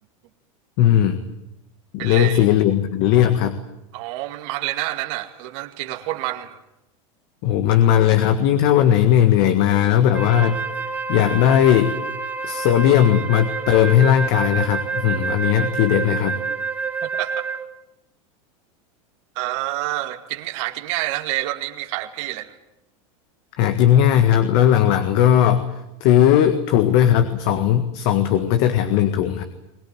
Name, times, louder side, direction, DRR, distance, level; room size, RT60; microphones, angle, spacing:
voice 1, 0.8-1.2 1.9-3.6 7.4-10.6 11.1-12.0 12.4-16.4 23.6-25.6 26.0-29.4, left 10 dB, 60° left, 8 dB, 1.8 m, -17 dB
voice 2, 2.0-2.5 3.9-6.6 17.0-17.4 19.4-22.5, right 16 dB, 65° right, 6 dB, 2.3 m, -28 dB
Wind instrument woodwind instrument, 10.1-17.7, right 5 dB, 10° right, 2.1 m, -28 dB
22.0 x 19.5 x 9.5 m, 0.89 s
supercardioid pair, 125°, 17 cm